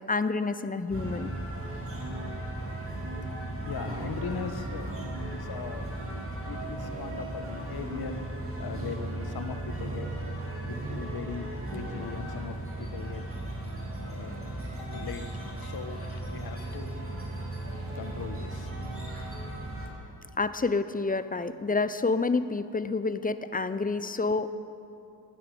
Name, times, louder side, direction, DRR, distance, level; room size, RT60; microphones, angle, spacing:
voice 1, 0.1-1.3 20.4-24.5, left 3 dB, 20° left, 13 dB, 0.7 m, -28 dB
sound 1, 0.9-19.9, right 1 dB, 35° right, 3.1 m, -36 dB
voice 2, 3.6-4.9 5.3-5.9 6.5-8.1 8.6-10.1 10.7-13.2 13.9-16.9 17.9-18.7, left 6 dB, 65° left, 8 dB, 1.2 m, -40 dB
16.0 x 9.6 x 7.0 m, 2.7 s
cardioid pair, 55°, 40 cm